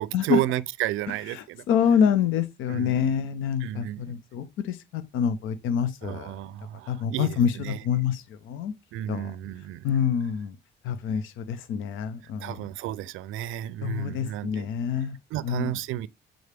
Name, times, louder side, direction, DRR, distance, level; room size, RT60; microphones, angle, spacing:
voice 1, 0.0-1.7 2.7-3.1 3.6-4.1 6.0-7.8 8.9-9.8 12.4-14.7 15.3-16.1, right 14 dB, 90° right, 0.4 m, -32 dB
voice 2, 1.3-6.4 6.9-7.6 7.8-8.7 9.1-9.3 9.8-10.6 10.8-12.6 13.8-15.2 15.4-15.7, left 7 dB, 90° left, 0.7 m, -26 dB
8.1 x 3.8 x 3.4 m
cardioid pair, 90°, 20 cm